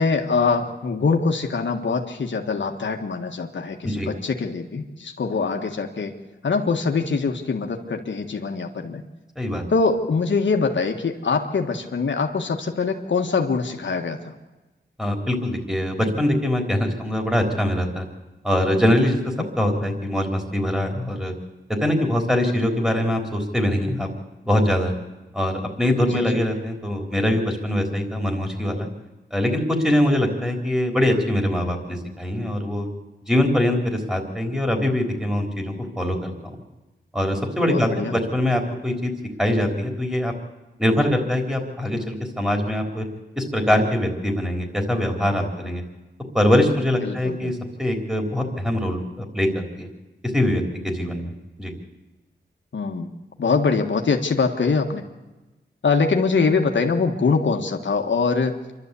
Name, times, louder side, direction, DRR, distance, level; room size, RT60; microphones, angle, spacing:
voice 1, 0.0-6.1 6.4-9.0 9.7-14.3 26.1-26.3 37.7-38.1 47.0-47.5 52.7-53.1 53.4-55.0 55.8-58.5, left 4 dB, 75° left, 3 dB, 1.6 m, -23 dB
voice 2, 15.0-18.0 18.4-21.3 21.7-24.1 24.4-24.9 25.3-28.9 29.3-32.9 33.3-36.6 37.1-39.1 39.4-40.3 40.8-43.1 43.4-45.8 46.3-49.9 50.3-51.3 51.6-51.7, left 1 dB, 5° right, 3 dB, 3.8 m, -23 dB
27.0 x 12.0 x 8.3 m, 1.1 s
wide cardioid pair, 85°, 19 cm